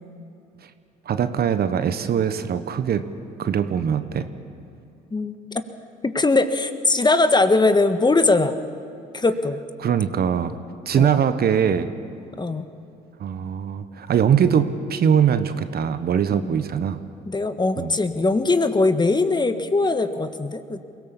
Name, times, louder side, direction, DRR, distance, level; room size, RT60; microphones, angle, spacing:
voice 1, 1.0-3.1 3.4-4.3 9.8-10.6 10.9-11.9 13.2-17.0 17.8-17.9, right 8 dB, 50° right, 11 dB, 1.2 m, -22 dB
voice 2, 5.1-5.6 6.0-8.6 9.1-9.6 11.0-11.2 12.4-12.7 16.3-16.6 17.3-20.8, left 3 dB, 20° left, 10 dB, 1.4 m, -21 dB
23.0 x 17.5 x 7.2 m, 2.7 s
hypercardioid pair, 60°, 20 cm